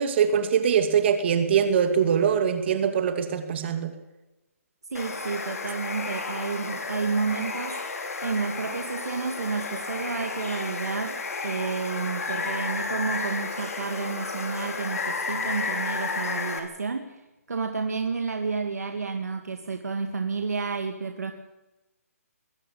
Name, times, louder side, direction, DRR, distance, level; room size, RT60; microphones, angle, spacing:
voice 1, 0.0-3.9, right 7 dB, 45° right, 2.5 m, -23 dB
Water, 4.9-16.6, left 4 dB, 70° left, 4.6 m, -32 dB
voice 2, 4.9-21.3, right 4 dB, 80° right, 2.2 m, -31 dB
21.5 x 15.5 x 8.7 m
hypercardioid pair, 150°, 8 cm